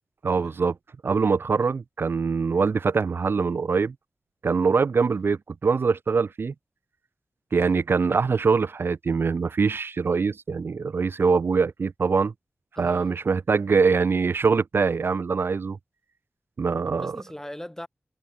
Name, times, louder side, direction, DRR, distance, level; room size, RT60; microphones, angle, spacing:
voice 1, 0.2-0.7 1.0-3.9 4.4-6.5 7.5-12.3 12.8-15.8 16.6-17.2, right 5 dB, 60° right, 0.3 m, -23 dB
voice 2, 12.8-13.1 16.9-17.9, left 1 dB, 10° left, 1.8 m, -40 dB
wide cardioid pair, 70°, 4 cm